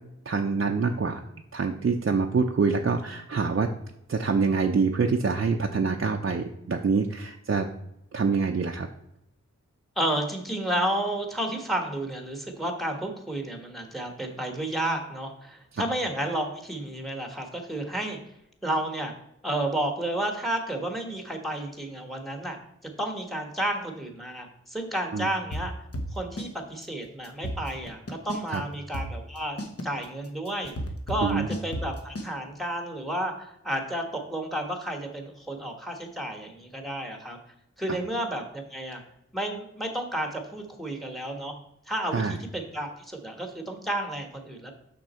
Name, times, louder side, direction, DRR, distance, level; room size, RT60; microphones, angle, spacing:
voice 1, 0.3-1.2 1.5-3.7 4.1-7.7 8.1-8.9 15.7-15.8 25.1-25.3 28.5-28.6 31.2-31.5 42.1-42.4, right 4 dB, 45° right, 3 dB, 0.6 m, -25 dB
voice 2, 10.0-18.2 18.6-19.1 19.4-22.6 23.0-25.7 26.1-30.7 31.1-37.4 37.8-39.0 39.3-41.5 41.9-44.7, right 1 dB, ahead, 4 dB, 1.4 m, -31 dB
sound 1, 25.5-26.5 26.8-26.9 27.2-28.6 28.9-32.3, equal, 55° left, 1.2 m, -33 dB
6.1 x 6.1 x 4.3 m, 0.81 s
wide cardioid pair, 55°, 29 cm